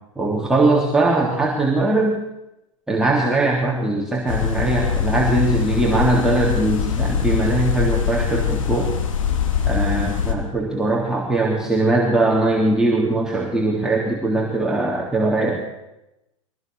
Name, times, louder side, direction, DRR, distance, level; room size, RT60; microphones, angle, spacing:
voice 1, 0.2-2.2 2.9-8.9 9.6-15.6, right 2 dB, 5° right, -3 dB, 3.5 m, -20 dB
sound 1, 4.3-10.3, left 7 dB, 70° left, 3.5 m, -22 dB
23.0 x 18.0 x 7.0 m, 0.93 s
hypercardioid pair, 95°, 17 cm